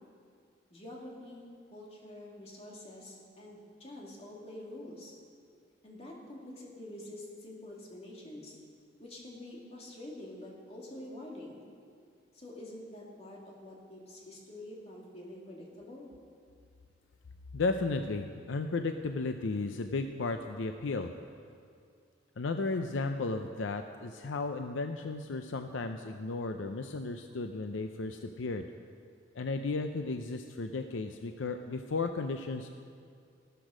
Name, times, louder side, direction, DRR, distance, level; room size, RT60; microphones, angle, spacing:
voice 1, 0.7-5.2 5.8-8.6 9.0-11.6 12.3-16.1, left 1 dB, 35° left, -3 dB, 2.5 m, -47 dB
voice 2, 17.5-21.1 22.4-28.6 29.3-32.7, left 3 dB, 85° left, 6 dB, 0.6 m, -34 dB
15.0 x 12.5 x 5.1 m, 2.3 s
head